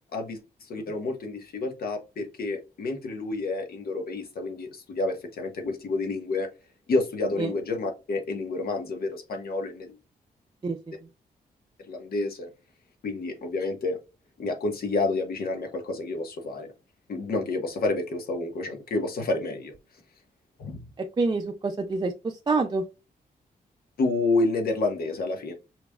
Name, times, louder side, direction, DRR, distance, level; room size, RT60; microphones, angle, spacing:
voice 1, 0.7-6.5 6.9-9.9 11.9-12.5 13.0-14.0 14.4-16.7 17.1-19.7 20.6-20.8 24.0-25.5, left 3 dB, 70° left, 1.4 m, -29 dB
voice 2, 21.0-22.8, right 3 dB, 25° right, 0.5 m, -27 dB
6.0 x 3.4 x 2.3 m
cardioid pair, 100°, 16 cm